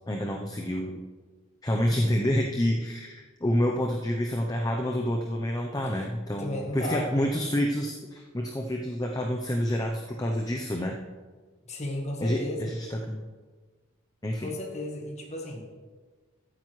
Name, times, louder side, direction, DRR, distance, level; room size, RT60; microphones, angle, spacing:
voice 1, 0.1-1.0 1.6-11.0 12.2-13.2 14.2-14.5, equal, 20° left, 1 dB, 0.7 m, -28 dB
voice 2, 6.4-7.1 11.7-12.7 14.4-15.7, left 1 dB, 35° left, 0 dB, 1.4 m, -34 dB
14.0 x 8.9 x 3.2 m, 1.4 s
head